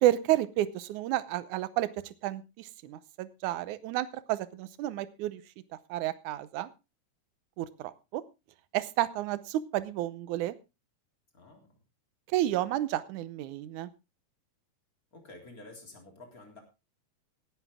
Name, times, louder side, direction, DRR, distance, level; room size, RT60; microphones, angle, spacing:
voice 1, 0.0-1.9 2.2-5.4 5.9-6.7 7.6-8.2 8.7-10.5 12.3-13.9, right 14 dB, 80° right, 16 dB, 2.2 m, -31 dB
voice 2, 11.3-11.7 15.1-16.6, left 2 dB, 30° left, 3 dB, 3.8 m, -50 dB
17.5 x 10.0 x 3.6 m, 0.27 s
omnidirectional pair, 3.5 m